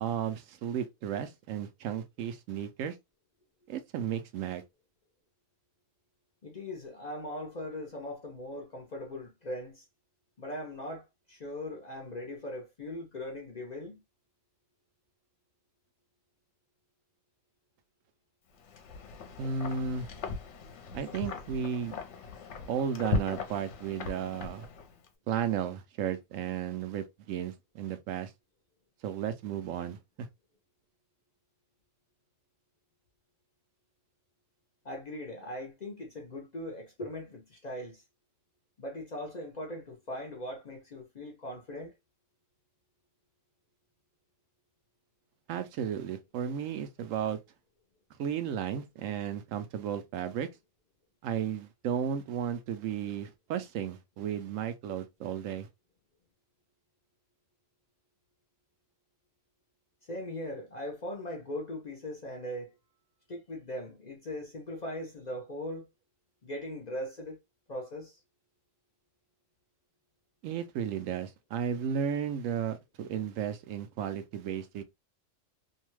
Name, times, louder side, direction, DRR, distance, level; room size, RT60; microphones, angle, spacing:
voice 1, 0.0-3.0 3.7-4.6 19.4-20.1 20.9-21.9 22.7-24.7 25.3-28.3 29.0-30.3 45.5-47.4 48.2-50.5 51.2-55.7 70.4-74.8, right 8 dB, 80° right, 0.9 m, -34 dB
voice 2, 6.4-9.8 10.4-14.0 34.8-38.0 38.8-41.9 60.1-62.8 63.3-65.9 66.4-67.4 67.7-68.2, left 1 dB, 45° left, 0.6 m, -40 dB
Wind, 18.6-25.1, left 4 dB, 70° left, 0.9 m, -38 dB
2.7 x 2.2 x 3.0 m
omnidirectional pair, 1.3 m